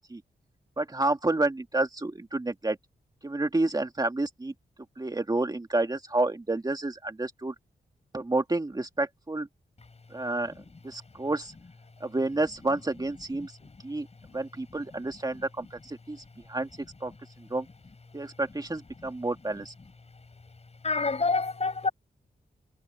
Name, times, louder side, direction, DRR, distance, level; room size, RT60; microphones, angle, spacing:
voice 1, 0.8-2.8 3.2-4.5 5.0-7.5 8.1-9.5 10.1-10.5 10.8-11.5 12.0-13.6 13.8-14.1 14.3-16.7 17.0-17.1 17.5-17.7 18.1-19.7, right 2 dB, 20° right, 2.2 m, -29 dB
voice 2, 20.8-21.9, left 3 dB, 35° left, 7.4 m, -28 dB
wide cardioid pair, 90°, 17 cm